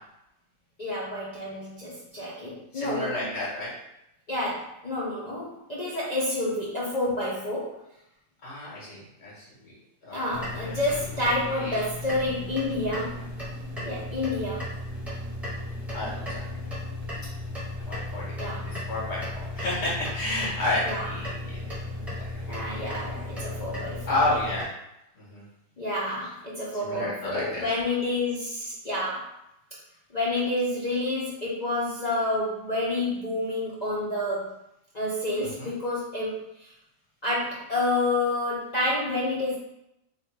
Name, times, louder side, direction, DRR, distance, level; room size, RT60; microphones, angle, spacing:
voice 1, 0.8-3.3 4.3-7.8 10.1-13.2 13.8-14.7 18.4-18.7 20.8-21.1 22.5-24.3 25.8-29.3 30.1-34.5 34.9-36.7 37.2-39.6, left 2 dB, 65° left, -8 dB, 0.4 m, -29 dB
voice 2, 2.7-3.7 8.4-9.7 10.0-10.8 11.6-11.8 15.9-16.4 17.6-21.6 24.1-24.7 25.2-25.4 26.8-27.7 35.6-35.7, left 2 dB, 40° left, -6 dB, 1.7 m, -31 dB
sound 1, 10.3-24.7, left 1 dB, ahead, 0.8 m, -35 dB
3.3 x 2.5 x 4.5 m, 0.84 s
omnidirectional pair, 1.8 m